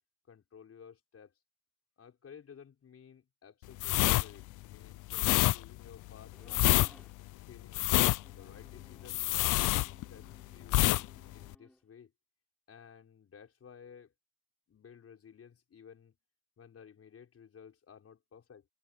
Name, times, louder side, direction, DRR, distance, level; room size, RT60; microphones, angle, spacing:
voice 1, 0.3-1.3 2.0-6.9 7.5-7.9 8.3-11.1 11.3-12.1 12.7-14.1 14.7-16.1 16.6-18.7, left 7 dB, 50° left, 6.2 m, -55 dB
sound 1, 3.8-10.3 10.7-11.1 11.3-11.5, left 19 dB, 85° left, 0.6 m, -27 dB
sound 2, 6.3-7.2 8.1-11.8, left 1 dB, 5° left, 3.5 m, -60 dB
cardioid pair, 90°, 30 cm